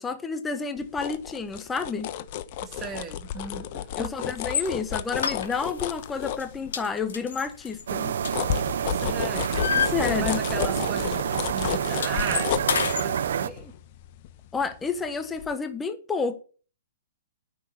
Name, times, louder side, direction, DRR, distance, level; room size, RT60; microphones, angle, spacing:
voice 1, 0.0-2.1 4.0-8.2 9.7-10.4 14.5-16.4, left 5 dB, 10° left, 1.1 m, -30 dB
sound 1, 0.8-7.0 7.5-15.0 15.4-15.5, left 11 dB, 45° left, 1.0 m, -33 dB
voice 2, 2.6-4.1 8.9-13.7, right 5 dB, 15° right, 2.6 m, -37 dB
sound 2, 4.4-4.7 5.2-5.9 6.2-6.4 6.7-8.8 9.1-10.6 10.8-11.0 11.3-13.1, left 7 dB, 70° left, 2.5 m, -30 dB
sound 3, 7.9-13.5, right 9 dB, 65° right, 0.6 m, -28 dB
9.5 x 6.5 x 7.2 m
hypercardioid pair, 135°, 0 cm